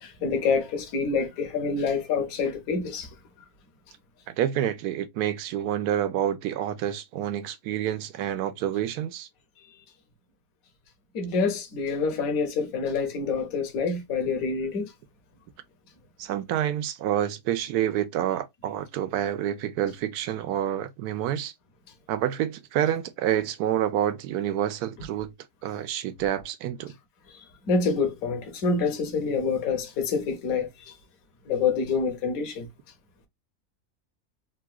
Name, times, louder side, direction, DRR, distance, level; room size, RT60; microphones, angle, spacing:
voice 1, 0.0-3.1 11.1-14.9 27.7-30.7 31.5-32.7, left 4 dB, 70° left, 1.3 m, -27 dB
voice 2, 4.3-9.3 16.2-21.5 22.1-25.3 25.6-26.9, right 11 dB, 90° right, 1.1 m, -28 dB
3.8 x 2.3 x 2.3 m
omnidirectional pair, 1.6 m